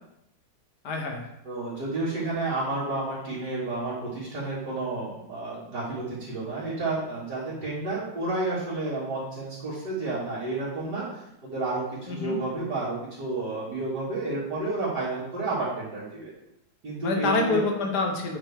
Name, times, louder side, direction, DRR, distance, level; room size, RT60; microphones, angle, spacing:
voice 1, 0.8-1.2 12.1-12.4 17.0-18.4, left 3 dB, 75° left, 2 dB, 1.9 m, -26 dB
voice 2, 1.4-11.0 11.4-16.3 16.8-17.6, right 2 dB, 75° right, -10 dB, 3.0 m, -31 dB
8.8 x 5.9 x 3.6 m, 0.83 s
omnidirectional pair, 1.8 m